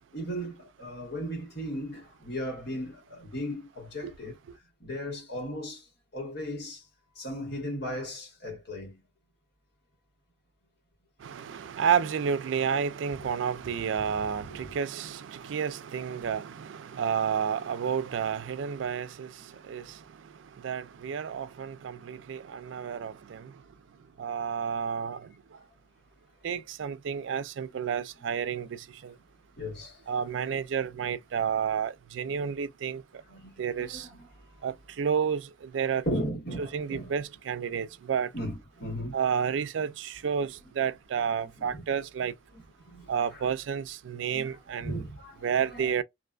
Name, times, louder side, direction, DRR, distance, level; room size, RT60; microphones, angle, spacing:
voice 1, 0.1-4.3 4.8-5.8 6.1-6.8 7.2-8.9 19.8-19.9 29.6-30.0 33.3-33.5 33.8-34.3 36.0-37.1 38.3-39.2 41.6-42.1 42.9-43.1 44.3-44.5 44.8-45.5 45.7-45.9, equal, 65° left, 1.5 m, -36 dB
voice 2, 11.2-19.3 19.6-20.0 20.6-23.5 24.2-25.3 26.4-29.1 30.1-33.0 33.6-34.1 34.6-36.0 36.6-38.3 39.1-42.3 43.1-45.0 45.4-46.0, right 7 dB, 80° right, 0.3 m, -31 dB
2.5 x 2.4 x 2.2 m
head